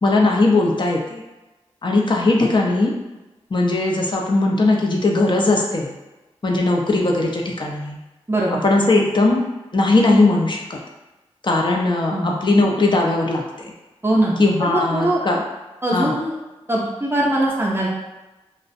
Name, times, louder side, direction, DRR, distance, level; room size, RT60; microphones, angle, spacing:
voice 1, 0.0-1.2 1.8-2.9 3.5-5.9 6.4-8.0 8.6-9.4 9.7-10.8 11.4-13.7 14.4-15.4 15.9-16.1, left 2 dB, 45° left, -1 dB, 0.5 m, -19 dB
voice 2, 8.3-8.6 12.1-12.3 14.0-14.3 14.6-15.2 15.8-16.3 16.7-17.9, right 1 dB, 20° right, -4 dB, 0.5 m, -21 dB
2.4 x 2.0 x 2.5 m, 1.1 s
cardioid pair, 50°, 11 cm